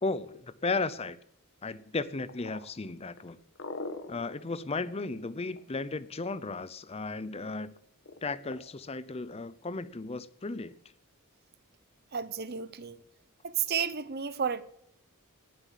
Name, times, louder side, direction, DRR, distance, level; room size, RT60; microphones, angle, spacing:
voice 1, 0.0-1.2 1.6-3.4 4.1-7.7 8.2-10.8, left 3 dB, 25° left, 0.6 m, -35 dB
sound 1, 2.3-6.0 8.1-8.6, left 3 dB, 55° left, 1.6 m, -42 dB
voice 2, 12.1-13.0 13.4-14.6, right 7 dB, 45° right, 0.8 m, -32 dB
18.5 x 7.7 x 7.4 m
head